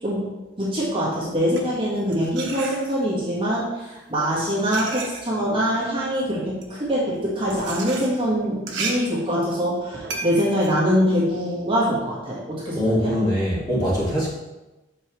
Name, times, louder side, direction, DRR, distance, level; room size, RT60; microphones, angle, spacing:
voice 1, 0.6-13.1, equal, 25° right, -7 dB, 1.4 m, -24 dB
sound 1, 1.3-3.3 4.0-11.9, right 4 dB, 65° right, 0.9 m, -35 dB
voice 2, 12.7-14.3, equal, 20° left, -8 dB, 2.1 m, -22 dB
6.3 x 5.4 x 3.1 m, 1.1 s
head